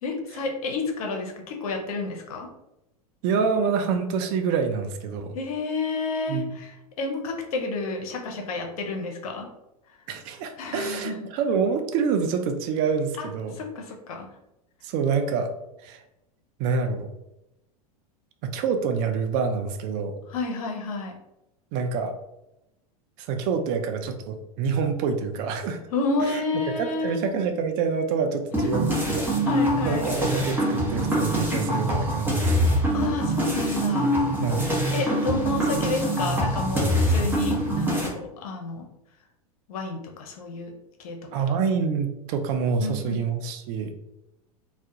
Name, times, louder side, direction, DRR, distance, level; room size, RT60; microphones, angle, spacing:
voice 1, 0.0-2.5 5.3-9.5 10.6-11.3 13.2-13.3 13.5-14.3 20.3-21.1 25.9-27.2 28.5-28.7 29.4-30.2 32.9-34.1 34.9-38.8 39.7-40.7 41.0-41.2 42.8-43.2, left 3 dB, 70° left, 2 dB, 0.6 m, -30 dB
voice 2, 3.2-5.3 6.3-6.5 10.1-13.6 14.8-15.5 15.8-16.0 16.6-17.1 18.4-20.2 21.7-22.1 23.2-25.8 26.3-26.4 26.8-29.3 29.8-32.8 34.4-34.6 41.3-43.9, right 5 dB, 45° right, 6 dB, 0.4 m, -26 dB
sound 1, 28.5-38.1, equal, 10° right, 0.9 m, -24 dB
2.3 x 2.1 x 2.7 m, 0.89 s
hypercardioid pair, 95°, 19 cm